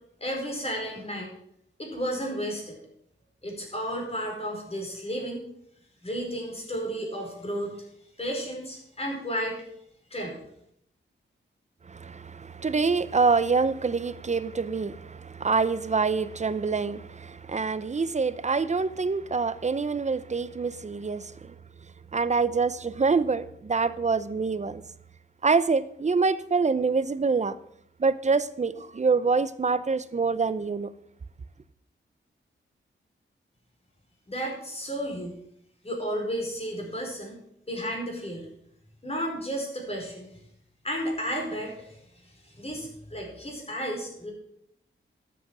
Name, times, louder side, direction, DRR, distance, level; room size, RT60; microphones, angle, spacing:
voice 1, 0.2-1.3 1.8-2.8 3.4-5.4 6.0-7.8 8.2-9.6 10.1-10.3 34.3-35.4 35.8-37.4 37.7-38.4 39.0-40.3 40.8-44.3, equal, 30° left, 4.7 m, -33 dB
voice 2, 11.9-21.5 22.1-24.8 25.4-27.6 28.0-30.9, right 4 dB, 35° right, 0.7 m, -26 dB
12.5 x 8.0 x 6.2 m
wide cardioid pair, 95°, 21 cm